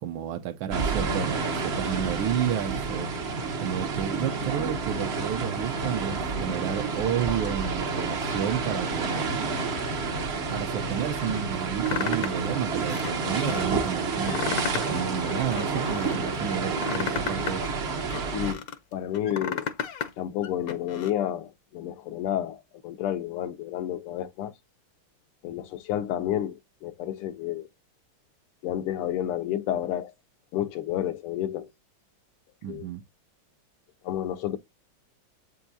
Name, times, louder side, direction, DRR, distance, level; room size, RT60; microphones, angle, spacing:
voice 1, 0.0-3.1 3.6-9.5 10.5-17.6 32.6-33.0, right 10 dB, 70° right, 1.4 m, -31 dB
sound 1, 0.7-18.5, right 4 dB, 50° right, 0.7 m, -29 dB
sound 2, 11.9-12.5 12.9-13.6 14.1-15.0 15.3-16.2 16.6-18.8 19.1-20.1 20.4-21.1, left 8 dB, 60° left, 1.0 m, -33 dB
voice 2, 18.9-19.7 20.2-24.5 25.4-27.7 28.6-30.1 30.5-31.7 32.7-32.9 34.0-34.6, left 11 dB, 85° left, 1.7 m, -30 dB
8.1 x 4.7 x 2.7 m
omnidirectional pair, 2.4 m